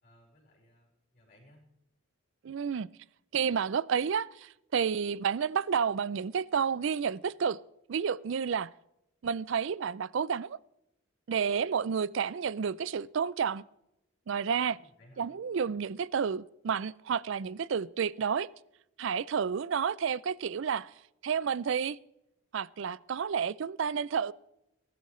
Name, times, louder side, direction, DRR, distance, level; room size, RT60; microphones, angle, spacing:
voice 1, 0.0-1.7 14.6-15.3, left 1 dB, 45° left, 4.6 m, -61 dB
voice 2, 2.4-2.9 3.3-7.6 7.9-8.7 9.2-10.6 11.3-13.6 14.3-14.8 15.2-18.5 19.0-20.9 21.2-22.0 22.5-24.3, right 6 dB, 60° right, 0.4 m, -30 dB
20.5 x 12.0 x 3.2 m
head